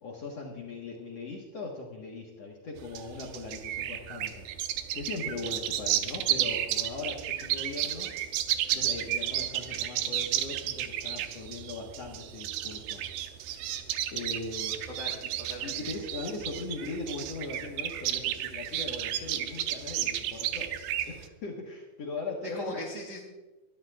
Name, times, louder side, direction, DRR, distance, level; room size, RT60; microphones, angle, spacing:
voice 1, 0.0-4.5 4.9-8.1 8.7-13.0 13.5-13.9 14.1-14.8 15.6-20.7 21.0-22.7, left 3 dB, 55° left, -2 dB, 2.1 m, -39 dB
sound 1, 2.8-21.3, right 12 dB, 85° right, 2.6 m, -32 dB
voice 2, 15.0-15.7 22.4-23.4, equal, 25° right, -1 dB, 1.9 m, -39 dB
22.0 x 13.0 x 2.5 m, 1.1 s
omnidirectional pair, 4.5 m